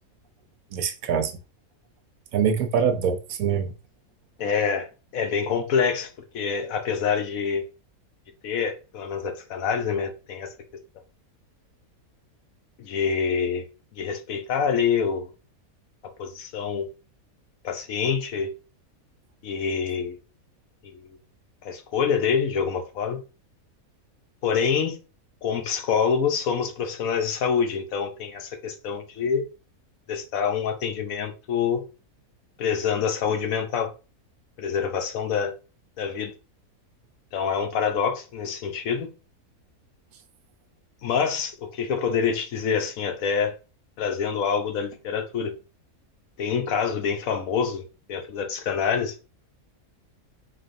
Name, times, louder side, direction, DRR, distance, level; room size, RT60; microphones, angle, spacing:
voice 1, 0.7-1.4 2.3-3.7, right 7 dB, 75° right, 1.0 m, -24 dB
voice 2, 4.4-7.7 8.4-10.5 12.8-13.7 13.9-15.3 16.2-16.9 17.6-18.5 19.4-20.2 20.9-21.2 21.6-23.2 24.4-25.0 25.4-29.4 30.1-31.8 32.6-33.9 34.6-35.6 36.0-36.3 37.3-39.1 41.0-43.6 44.0-45.6 46.4-49.1, left 6 dB, 70° left, 1.1 m, -26 dB
4.0 x 3.3 x 2.6 m
omnidirectional pair, 1.5 m